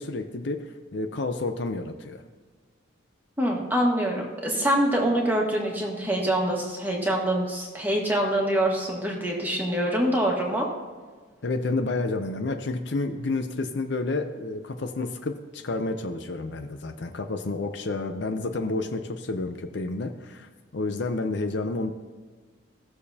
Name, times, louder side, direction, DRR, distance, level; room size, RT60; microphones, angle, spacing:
voice 1, 0.0-2.2 11.4-21.9, left 3 dB, 55° left, 6 dB, 0.6 m, -30 dB
voice 2, 3.4-10.7, right 1 dB, 10° right, -1 dB, 1.5 m, -25 dB
17.0 x 6.7 x 2.8 m, 1.5 s
head